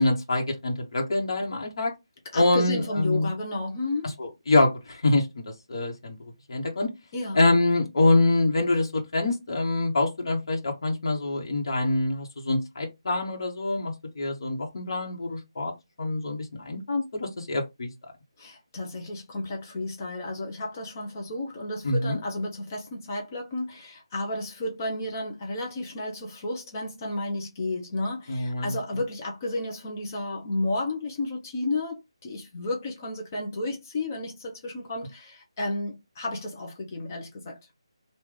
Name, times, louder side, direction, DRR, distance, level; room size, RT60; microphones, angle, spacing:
voice 1, 0.0-1.9 2.3-3.3 4.2-5.4 5.7-6.2 6.5-6.9 7.3-15.7 16.0-17.9 21.8-22.2 28.3-28.8, left 2 dB, 55° left, 1.3 m, -25 dB
voice 2, 2.3-4.1 7.1-7.4 18.4-37.6, left 2 dB, 30° left, 0.8 m, -32 dB
3.3 x 2.5 x 3.8 m
figure-of-eight pair, 165°, 3 cm